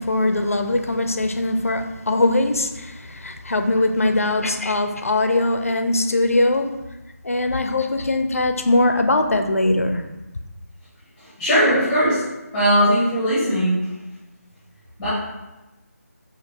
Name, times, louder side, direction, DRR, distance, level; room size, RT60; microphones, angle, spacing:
voice 1, 0.0-6.8 7.2-10.0, left 2 dB, 60° left, 6 dB, 0.4 m, -21 dB
voice 2, 11.2-12.2 12.5-13.9 15.0-15.1, equal, 5° left, -10 dB, 0.6 m, -19 dB
5.0 x 2.4 x 2.9 m, 1.0 s
figure-of-eight pair, 160°, 9 cm